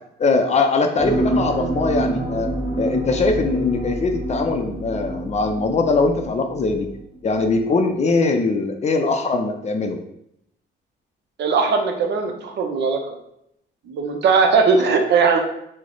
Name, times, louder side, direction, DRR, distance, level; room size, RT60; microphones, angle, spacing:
voice 1, 0.2-2.5 2.8-6.9 7.2-10.0, left 3 dB, 35° left, 5 dB, 0.4 m, -21 dB
sound 1, 1.0-7.0 7.4-7.5, right 1 dB, 25° right, 1.1 m, -27 dB
voice 2, 11.4-13.0 13.9-15.4, right 5 dB, 60° right, 4 dB, 0.6 m, -19 dB
3.0 x 2.1 x 3.9 m, 0.77 s
cardioid pair, 90°, 20 cm